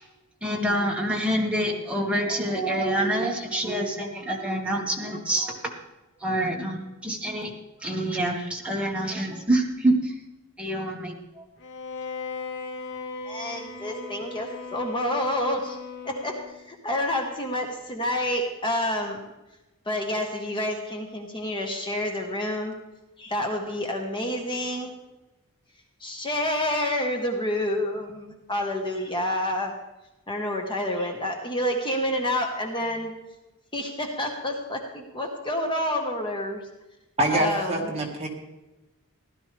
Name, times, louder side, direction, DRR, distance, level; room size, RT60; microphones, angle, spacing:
voice 1, 0.4-5.7 6.2-7.5 7.8-10.1 10.6-11.5, right 1 dB, 5° right, -2 dB, 1.9 m, -26 dB
Bowed string instrument, 11.6-16.7, left 4 dB, 55° left, 1.0 m, -38 dB
voice 2, 13.2-15.8 16.0-16.3 16.7-19.2 19.9-22.7 23.2-24.9 26.0-29.7 30.3-33.1 33.7-36.6 37.3-38.0, left 1 dB, 20° left, 2 dB, 1.4 m, -28 dB
voice 3, 37.2-38.3, right 1 dB, 30° right, 0 dB, 1.9 m, -25 dB
16.0 x 12.0 x 3.4 m, 1.0 s
head